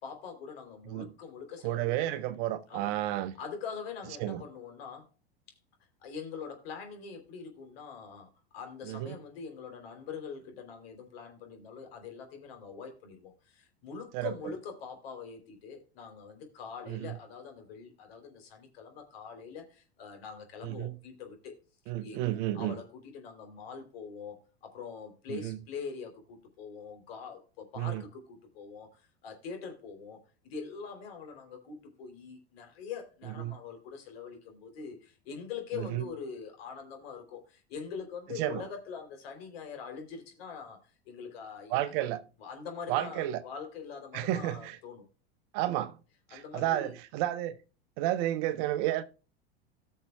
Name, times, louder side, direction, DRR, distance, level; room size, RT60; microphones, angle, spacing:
voice 1, 0.0-2.1 2.7-2.9 3.4-5.1 6.0-21.5 22.0-22.3 22.5-30.2 30.4-41.9 42.4-45.0 46.3-46.9, left 6 dB, 65° left, 3.4 m, -43 dB
voice 2, 1.6-3.3 4.2-4.4 8.8-9.2 14.1-14.3 16.9-17.2 20.6-21.0 21.9-22.7 25.3-25.6 27.8-28.0 33.4-33.6 35.8-36.0 38.3-38.6 41.7-42.2 42.9-43.4 44.1-44.8 45.5-46.0 46.3-47.6 48.0-49.0, right 14 dB, 50° right, 0.9 m, -31 dB
18.5 x 6.5 x 2.3 m
hypercardioid pair, 90°, 32 cm